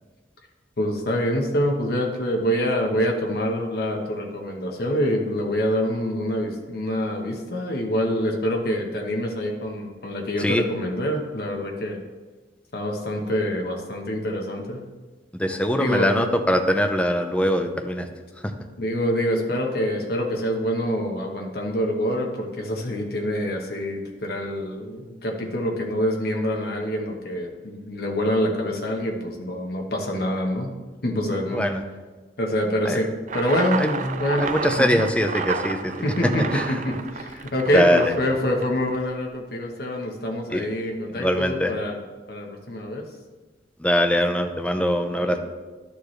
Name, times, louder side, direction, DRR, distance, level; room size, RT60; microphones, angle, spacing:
voice 1, 0.8-12.0 12.7-14.8 15.8-16.1 18.8-30.7 31.0-31.7 32.4-33.1 33.3-33.8 34.2-34.5 34.8-35.0 36.0-41.9 42.3-43.1 45.1-45.4, equal, 60° left, 1 dB, 1.1 m, -26 dB
voice 2, 15.3-18.1 18.4-18.5 31.5-31.8 32.8-33.0 33.8-35.9 36.5-36.8 37.7-38.2 40.5-40.7 41.1-41.7 43.8-45.4, equal, 5° left, 5 dB, 0.6 m, -22 dB
sound 1, 33.3-39.1, right 5 dB, 45° right, 0.4 m, -31 dB
11.5 x 6.8 x 3.2 m, 1.3 s
head